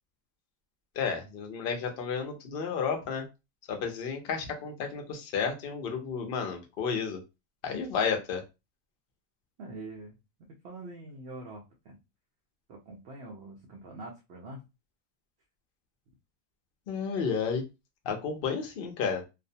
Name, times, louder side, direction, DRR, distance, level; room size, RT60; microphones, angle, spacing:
voice 1, 1.0-3.3 3.7-7.2 7.6-8.4 16.9-17.7 18.0-19.2, left 6 dB, 55° left, 3 dB, 0.6 m, -32 dB
voice 2, 9.6-10.2 10.5-12.0 12.7-14.6, right 2 dB, 65° right, 0 dB, 0.7 m, -44 dB
2.5 x 2.1 x 2.6 m, 0.25 s
omnidirectional pair, 1.6 m